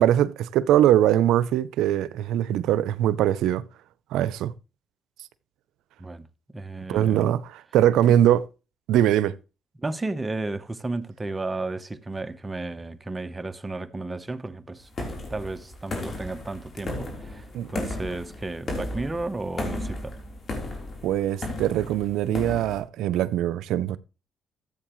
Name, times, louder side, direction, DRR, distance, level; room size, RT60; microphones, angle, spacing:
voice 1, 0.0-3.6 4.1-4.5 6.9-7.4 7.7-8.4 8.9-9.3 17.5-17.7 21.0-24.0, right 11 dB, 90° right, 0.5 m, -21 dB
voice 2, 6.0-7.3 8.1-8.2 9.8-14.9 15.3-20.1, right 2 dB, 20° right, 0.9 m, -33 dB
sound 1, 14.9-22.8, left 1 dB, 45° left, 3.5 m, -34 dB
14.0 x 7.9 x 3.1 m
cardioid pair, 90°, 0 cm